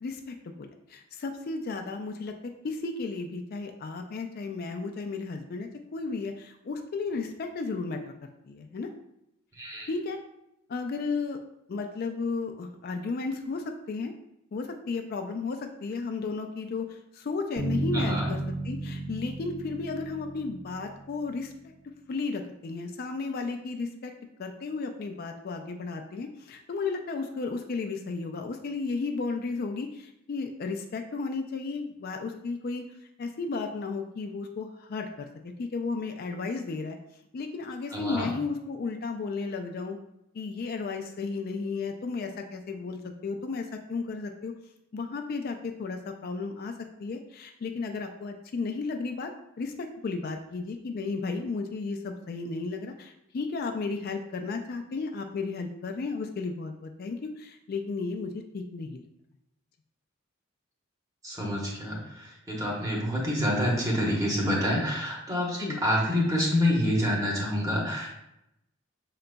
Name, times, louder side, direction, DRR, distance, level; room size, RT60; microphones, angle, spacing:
voice 1, 0.0-2.3 2.6-8.0 8.5-8.9 9.9-10.2 10.7-11.4 11.7-14.1 14.5-18.4 18.6-21.5 22.1-24.1 24.4-32.9 33.2-35.3 35.6-37.0 37.3-40.0 40.3-44.5 44.9-46.7 47.0-49.3 49.6-59.0 65.6-65.8, left 4 dB, 45° left, 4 dB, 0.3 m, -34 dB
voice 2, 9.5-9.9 17.9-18.4 37.9-38.3 61.2-68.1, left 1 dB, 15° right, -3 dB, 1.0 m, -27 dB
Bass guitar, 17.6-21.5, right 2 dB, 50° right, 1.3 m, -33 dB
5.7 x 3.9 x 2.2 m, 0.83 s
head